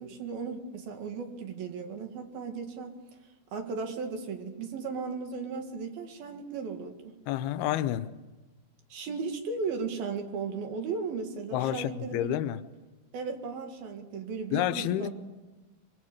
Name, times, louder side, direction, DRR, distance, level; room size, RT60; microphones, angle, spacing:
voice 1, 0.0-3.0 3.5-7.1 8.9-12.5 13.1-15.1, right 5 dB, 65° right, 3.7 m, -36 dB
voice 2, 7.3-8.1 11.5-12.6 14.5-15.1, left 12 dB, 75° left, 2.7 m, -29 dB
25.0 x 23.5 x 8.7 m
omnidirectional pair, 4.8 m